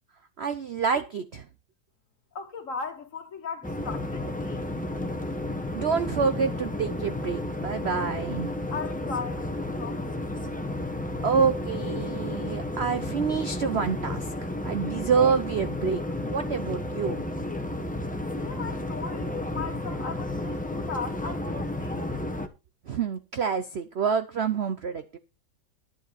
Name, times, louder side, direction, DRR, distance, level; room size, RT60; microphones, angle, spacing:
voice 1, 0.4-1.5 5.7-8.5 11.2-17.2 22.9-25.2, right 6 dB, 60° right, 0.6 m, -27 dB
voice 2, 2.3-4.8 8.7-10.1 18.4-22.2, left 5 dB, 45° left, 1.7 m, -37 dB
sound 1, 3.6-22.5, left 1 dB, 5° left, 0.7 m, -32 dB
11.0 x 9.8 x 4.1 m
omnidirectional pair, 2.0 m